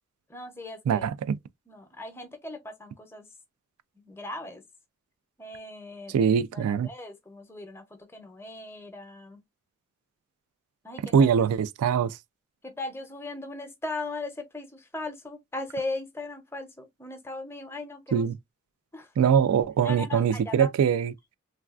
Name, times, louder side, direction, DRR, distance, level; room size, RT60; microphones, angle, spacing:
voice 1, 0.3-1.1 1.7-3.3 4.0-4.6 5.4-9.4 10.8-11.3 12.6-18.3 18.9-19.1 19.8-20.7, left 2 dB, 10° left, 0.6 m, -38 dB
voice 2, 0.9-1.4 6.1-6.9 11.1-12.2 18.1-18.3 19.2-21.1, right 7 dB, 90° right, 0.3 m, -23 dB
3.2 x 2.3 x 2.3 m
head